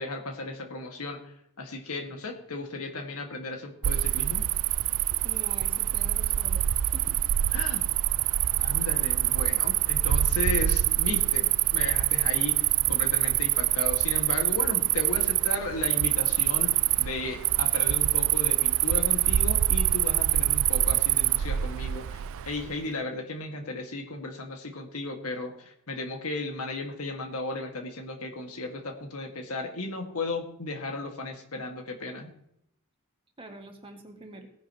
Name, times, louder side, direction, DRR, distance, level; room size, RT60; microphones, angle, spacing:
voice 1, 0.0-4.4 7.5-7.9 8.6-16.7 17.0-32.3, left 2 dB, 80° left, 3 dB, 1.9 m, -35 dB
Cricket, 3.8-22.7, right 13 dB, 65° right, 0.3 m, -25 dB
voice 2, 5.1-6.7 6.9-7.2 33.4-34.5, right 2 dB, 25° right, 2 dB, 1.8 m, -45 dB
18.0 x 10.5 x 3.0 m, 0.75 s
head